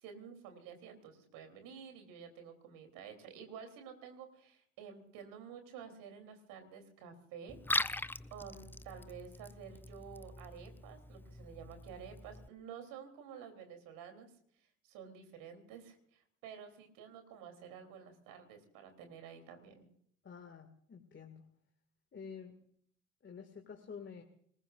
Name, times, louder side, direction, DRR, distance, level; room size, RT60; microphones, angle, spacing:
voice 1, 0.0-8.0 8.3-14.3 14.8-19.9, right 7 dB, 60° right, 7 dB, 3.5 m, -51 dB
Liquid, 7.5-12.5, left 2 dB, 5° left, 0.5 m, -41 dB
voice 2, 20.2-21.5 22.1-22.5 23.2-24.2, left 6 dB, 30° left, 4 dB, 2.3 m, -49 dB
26.5 x 20.0 x 2.6 m, 0.64 s
figure-of-eight pair, 50°, 38 cm